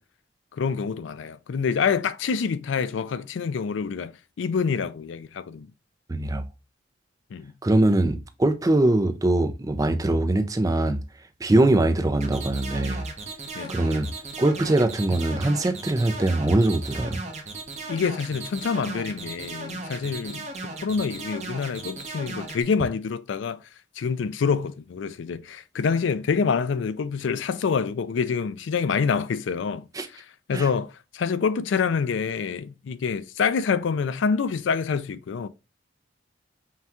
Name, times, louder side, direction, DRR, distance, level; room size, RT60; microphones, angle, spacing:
voice 1, 0.5-4.1 4.4-5.7 7.3-7.5 13.5-13.8 17.9-20.5 20.8-23.6 24.0-29.9 30.1-35.5, left 5 dB, 85° left, 0.4 m, -26 dB
voice 2, 6.1-6.4 7.6-11.0 11.4-13.1 13.7-14.1 14.4-17.2 29.9-30.1 30.5-30.7, right 2 dB, 20° right, 0.4 m, -22 dB
sound 1, 12.2-22.6, right 3 dB, 40° right, 0.9 m, -36 dB
5.6 x 2.3 x 2.9 m
head